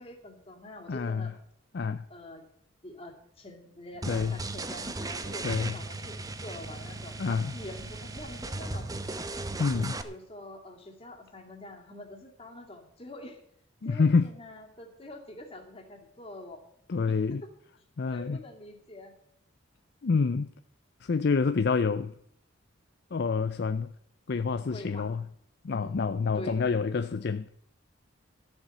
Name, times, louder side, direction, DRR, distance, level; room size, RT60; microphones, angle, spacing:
voice 1, 0.0-1.3 2.1-2.5 2.8-8.9 9.8-13.4 13.8-16.6 17.1-17.5 18.0-19.1 24.7-25.1 25.7-26.6, left 1 dB, 30° left, 2.4 m, -45 dB
voice 2, 0.9-1.3 1.7-2.0 4.1-4.4 5.4-5.7 7.2-7.5 9.6-10.0 13.8-14.3 16.9-17.4 18.0-18.4 20.0-20.5 21.0-22.1 23.1-23.9 24.3-25.3 25.6-27.5, left 4 dB, 55° left, 0.5 m, -27 dB
sound 1, 4.0-10.0, right 2 dB, 20° right, 0.8 m, -37 dB
13.5 x 7.2 x 7.8 m
head